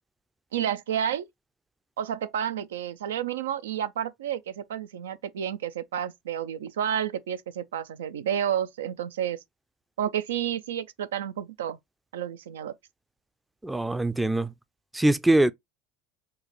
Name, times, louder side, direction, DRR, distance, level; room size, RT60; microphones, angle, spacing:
voice 1, 0.5-1.3 2.0-9.4 10.0-11.8 12.1-12.7, right 9 dB, 85° right, 0.4 m, -30 dB
voice 2, 13.6-14.5 14.9-15.5, right 1 dB, 10° right, 0.4 m, -22 dB
4.6 x 2.2 x 3.1 m
hypercardioid pair, 85°, 0 cm